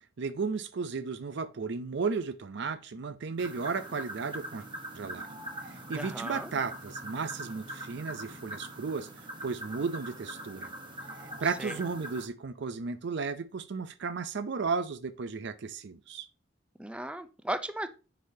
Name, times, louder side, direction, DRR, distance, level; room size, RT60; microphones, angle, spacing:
voice 1, 0.2-4.6 4.9-5.3 5.6-9.1 9.4-10.7 11.2-16.3, right 5 dB, 65° right, 0.5 m, -34 dB
sound 1, 3.4-12.3, right 1 dB, 25° right, 1.0 m, -42 dB
voice 2, 5.9-6.5 11.6-11.7 16.8-17.9, right 1 dB, 5° right, 0.4 m, -36 dB
9.4 x 4.1 x 2.7 m
head